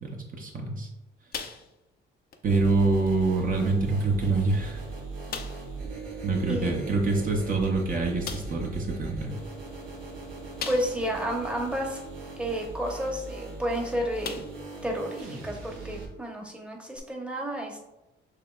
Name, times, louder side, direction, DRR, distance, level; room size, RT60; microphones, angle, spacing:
voice 1, 0.0-0.9 2.4-4.8 6.2-9.3, right 3 dB, 45° right, 0 dB, 0.9 m, -26 dB
sound 1, 1.3-2.0 2.3-2.5 3.1-3.2 4.0-4.1 4.5-4.6 5.3-5.7 7.4-7.5 8.2-8.6 10.6-11.2 11.7-11.8 13.6-13.8 14.2-14.7 15.2-15.3 16.9-17.0, left 6 dB, 50° left, 0.6 m, -38 dB
sound 2, 2.4-16.0, right 3 dB, 80° right, 1.4 m, -39 dB
voice 2, 6.5-6.8 10.7-12.0 12.4-14.4 14.8-17.8, equal, 5° right, 0 dB, 1.0 m, -31 dB
6.5 x 2.9 x 2.4 m, 0.94 s
cardioid pair, 90°, 20 cm